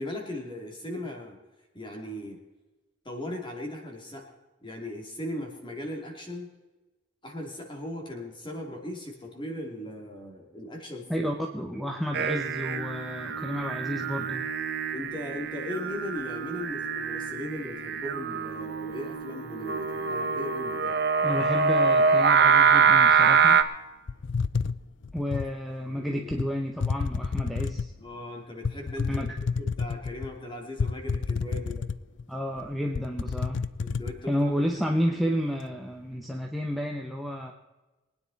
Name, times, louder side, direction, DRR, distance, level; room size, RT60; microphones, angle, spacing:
voice 1, 0.0-1.4 1.7-2.4 3.0-4.3 4.6-6.5 7.2-11.3 11.7-11.9 14.9-21.0 25.8-26.3 28.0-29.3 29.6-31.9 33.8-35.0, left 1 dB, 25° left, 1 dB, 2.7 m, -38 dB
voice 2, 11.1-14.5 21.2-23.6 25.1-27.9 29.1-29.3 32.3-33.7 34.3-37.5, equal, ahead, 2 dB, 0.9 m, -31 dB
Singing, 12.1-23.6, right 6 dB, 50° right, 0.9 m, -24 dB
sound 1, 24.1-25.5 26.3-26.5 26.8-28.0 28.6-30.3 30.8-32.2 32.6-32.7 32.9-34.1, left 5 dB, 60° left, 0.5 m, -30 dB
23.5 x 9.7 x 4.1 m, 1.1 s
head